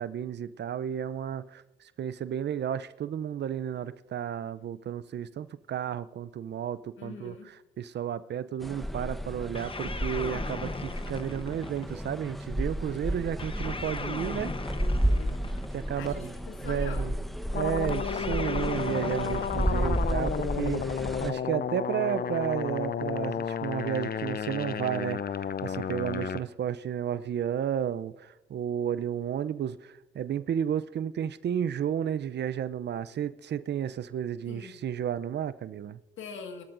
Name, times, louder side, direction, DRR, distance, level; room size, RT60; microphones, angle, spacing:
voice 1, 0.0-14.5 15.7-16.3 16.6-17.1 17.5-36.0, right 9 dB, 55° right, 0.6 m, -32 dB
voice 2, 7.0-7.5 14.7-15.5 16.0-17.2 34.5-34.8 36.2-36.6, left 5 dB, 70° left, 1.9 m, -43 dB
sound 1, 8.6-21.3, equal, ahead, 1.0 m, -32 dB
sound 2, 9.5-12.1 13.4-16.0 17.9-20.5, left 3 dB, 25° left, 1.0 m, -38 dB
sound 3, 17.5-26.4, left 7 dB, 50° left, 0.6 m, -32 dB
21.5 x 13.0 x 2.6 m
hypercardioid pair, 50°, 21 cm